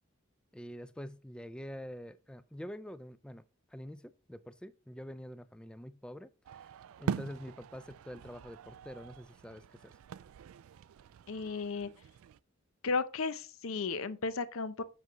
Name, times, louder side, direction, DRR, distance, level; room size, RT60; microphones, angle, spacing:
voice 1, 0.5-3.4 3.7-6.7 7.0-9.9, equal, 5° left, 0.4 m, -46 dB
sound 1, 6.5-12.4, right 7 dB, 80° right, 0.3 m, -43 dB
voice 2, 11.3-11.9 12.8-14.8, left 4 dB, 75° left, 0.6 m, -34 dB
7.9 x 6.0 x 3.0 m
head